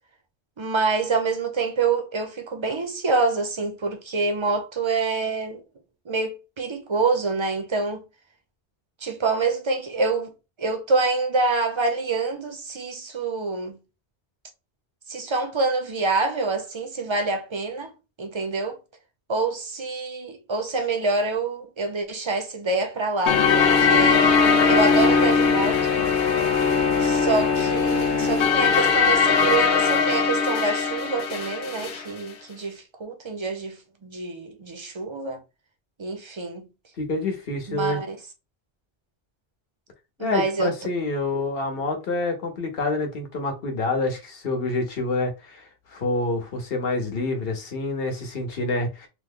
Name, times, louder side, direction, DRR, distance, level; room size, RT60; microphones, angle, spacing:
voice 1, 0.6-5.6 6.1-8.0 9.0-10.3 10.6-13.8 15.1-17.9 18.2-18.8 19.3-24.3 24.7-26.0 27.0-35.4 36.0-36.7 37.7-38.2 40.2-40.7, right 3 dB, 40° right, 0.4 m, -26 dB
sound 1, 23.3-32.0, left 5 dB, 85° left, 1.0 m, -20 dB
voice 2, 37.0-38.0 40.2-49.1, left 2 dB, 60° left, 1.0 m, -27 dB
3.0 x 2.1 x 3.5 m
omnidirectional pair, 1.1 m